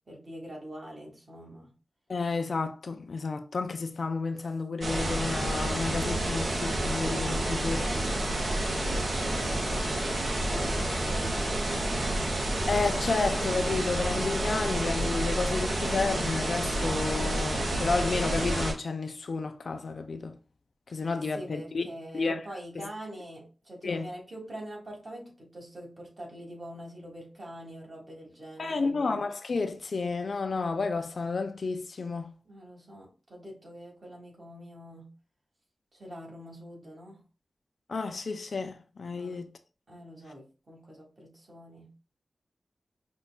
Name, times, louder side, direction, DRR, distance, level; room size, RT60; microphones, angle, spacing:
voice 1, 0.1-1.7 6.9-7.0 7.7-12.3 21.1-29.0 32.4-35.1 35.9-37.2 39.1-39.5 39.9-42.1, equal, 40° right, 1.7 m, -45 dB
voice 2, 2.1-8.1 10.5-10.7 12.7-20.3 20.9-21.9 22.1-22.4 22.8-22.9 23.8-24.1 28.6-32.3 37.9-39.5, left 4 dB, 65° left, 0.4 m, -31 dB
sound 1, 4.8-18.7, right 1 dB, 60° right, 1.0 m, -29 dB
5.4 x 2.3 x 2.3 m
wide cardioid pair, 90°, 0 cm